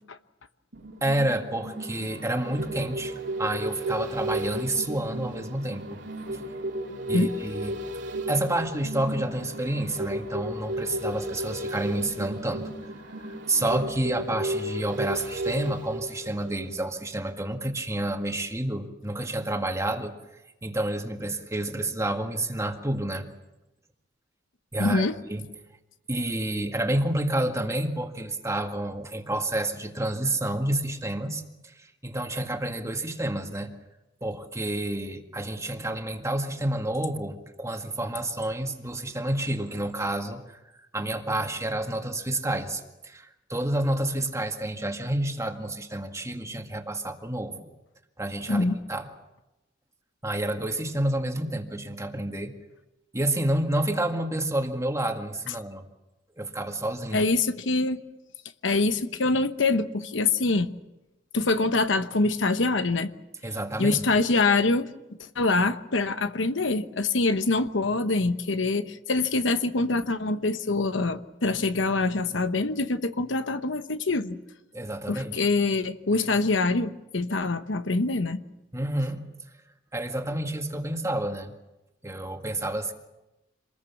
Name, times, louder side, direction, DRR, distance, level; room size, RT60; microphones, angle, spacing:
sound 1, 0.7-17.0 17.3-17.4, right 1 dB, 65° right, 3.2 m, -34 dB
voice 1, 1.0-6.0 7.1-7.8 8.3-12.9 13.2-20.1 20.6-23.3 24.7-25.4 26.1-33.7 34.2-40.6 40.9-47.6 48.2-49.1 50.2-52.5 53.1-55.8 56.4-57.3 63.4-64.0 74.7-75.4 78.7-79.2 79.9-81.5 82.0-82.9, right 1 dB, 15° right, 4 dB, 2.0 m, -29 dB
voice 2, 24.8-25.1 48.5-48.8 57.1-58.0 58.6-60.7 61.3-63.1 63.8-64.9 65.4-74.4 75.1-78.4, left 3 dB, 75° left, 10 dB, 1.0 m, -25 dB
26.5 x 21.0 x 7.2 m, 0.98 s
head